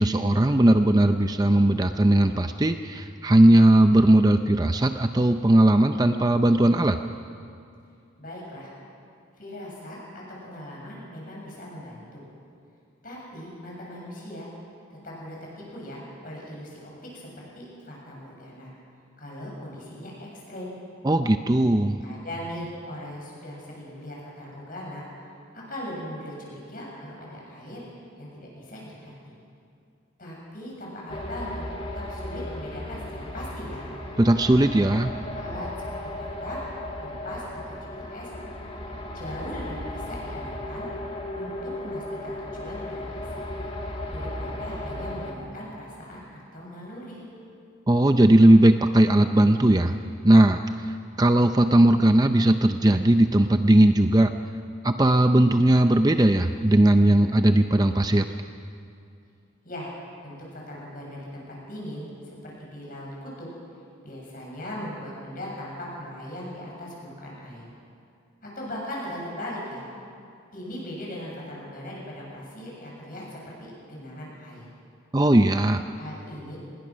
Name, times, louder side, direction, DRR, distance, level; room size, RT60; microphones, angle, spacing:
voice 1, 0.0-7.0 21.0-22.0 34.2-35.1 47.9-50.0 50.2-54.3 54.8-58.3 75.1-75.8, right 1 dB, 20° right, 7 dB, 0.5 m, -18 dB
voice 2, 8.2-8.7 9.4-10.0 10.4-12.2 13.0-14.5 15.0-18.7 19.2-20.7 22.0-25.3 25.5-27.8 28.2-29.3 30.2-31.7 31.9-33.9 35.3-35.7 36.0-36.6 37.0-38.3 39.1-40.9 41.4-43.5 44.1-47.3 59.6-59.9 60.2-63.5 64.0-67.7 68.4-69.9 70.5-74.7 75.9-76.6, left 1 dB, 45° left, -3 dB, 7.5 m, -39 dB
sound 1, 31.1-45.3, left 1 dB, 30° left, 1.8 m, -35 dB
25.5 x 20.5 x 6.3 m, 2.5 s
head